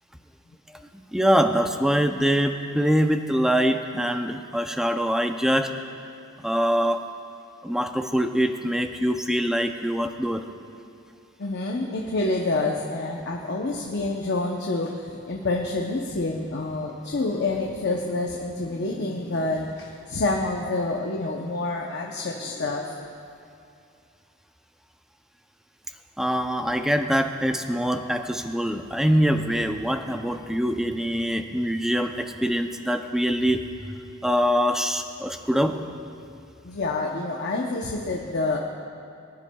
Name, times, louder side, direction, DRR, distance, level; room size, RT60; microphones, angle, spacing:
voice 1, 0.9-5.7 6.4-7.0 7.6-10.4 26.2-33.6 34.2-35.8, equal, ahead, 6 dB, 0.4 m, -24 dB
voice 2, 11.4-23.1 36.6-38.6, left 2 dB, 50° left, 0 dB, 0.7 m, -28 dB
22.0 x 10.0 x 2.3 m, 2.5 s
head